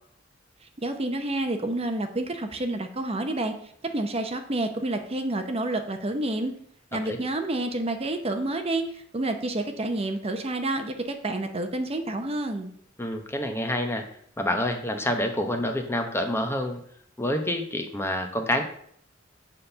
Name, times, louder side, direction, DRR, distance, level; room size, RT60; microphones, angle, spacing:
voice 1, 0.8-3.6 3.8-6.5 6.9-12.7, right 2 dB, 30° right, 6 dB, 0.8 m, -29 dB
voice 2, 13.0-14.0 14.4-16.8 17.2-18.6, left 1 dB, 15° left, 5 dB, 0.9 m, -27 dB
7.6 x 4.3 x 6.7 m, 0.65 s
head